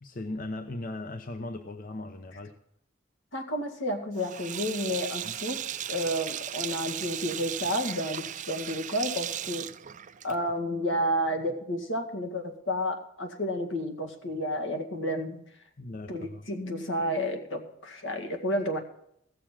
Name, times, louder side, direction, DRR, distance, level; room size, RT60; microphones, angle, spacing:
voice 1, 0.0-2.6 5.2-5.3 15.8-16.5, left 2 dB, 45° left, 7 dB, 0.7 m, -38 dB
voice 2, 3.3-5.6 5.9-9.7 10.2-15.4 16.1-18.8, equal, 75° left, 4 dB, 2.0 m, -31 dB
Sink (filling or washing), 4.2-10.6, right 11 dB, 40° right, 0.4 m, -36 dB
15.5 x 6.8 x 7.3 m, 0.74 s
head